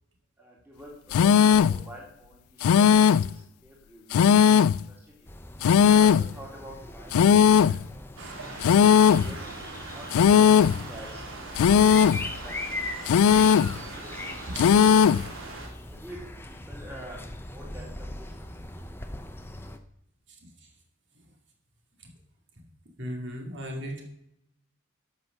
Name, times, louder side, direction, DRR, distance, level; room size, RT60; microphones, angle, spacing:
voice 1, 0.4-4.4 4.7-5.3 5.8-8.1 8.4-9.5 9.9-11.2 11.5-14.3 15.9-17.2 17.5-18.3, right 1 dB, 10° right, -2 dB, 2.7 m, -47 dB
sound 1, 1.1-1.8 2.6-3.3 4.1-4.8 5.6-6.3 7.1-7.8 8.6-9.3 10.1-10.8 11.6-12.3 13.1-13.8 14.6-15.3, left 7 dB, 90° left, 0.3 m, -18 dB
sound 2, 5.3-19.8, left 1 dB, 10° left, 0.7 m, -40 dB
sound 3, 8.2-15.7, right 3 dB, 75° right, 3.0 m, -41 dB
voice 2, 14.4-14.9 20.3-20.4 22.0-22.1 23.0-24.0, equal, 55° right, 1 dB, 2.6 m, -38 dB
12.5 x 6.2 x 6.7 m, 0.77 s
head